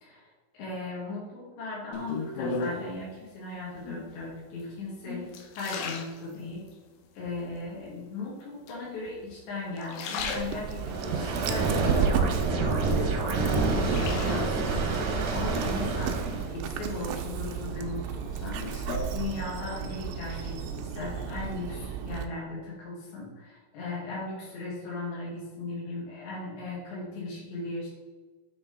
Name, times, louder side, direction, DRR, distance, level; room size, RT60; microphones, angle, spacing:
voice 1, 0.5-5.3 5.5-6.6 7.1-18.6 19.1-27.9, left 3 dB, 70° left, -5 dB, 4.4 m, -37 dB
sound 1, 1.9-3.0 3.8-4.3 4.8-6.8 7.3-7.9 8.7-9.4 9.7-11.0 11.5-12.7 13.1-14.8 16.1-16.7 17.2-19.8 20.0-20.5, left 4 dB, 85° left, 3.1 m, -37 dB
Dog, 10.2-22.3, right 8 dB, 85° right, 3.0 m, -34 dB
sound 2, 10.8-16.5, right 3 dB, 70° right, 2.0 m, -28 dB
8.6 x 4.1 x 3.8 m, 1.3 s
omnidirectional pair, 5.2 m